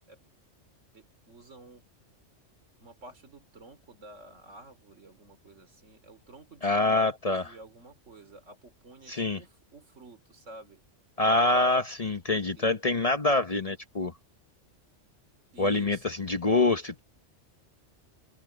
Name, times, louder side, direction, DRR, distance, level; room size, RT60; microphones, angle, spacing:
voice 1, 0.9-1.8 2.8-7.0 7.3-10.8 12.6-12.7 15.5-16.2, right 2 dB, 75° right, 3.7 m, -51 dB
voice 2, 6.6-7.5 9.1-9.4 11.2-14.1 15.6-17.0, left 2 dB, 35° left, 0.9 m, -25 dB
open air
omnidirectional pair, 1.3 m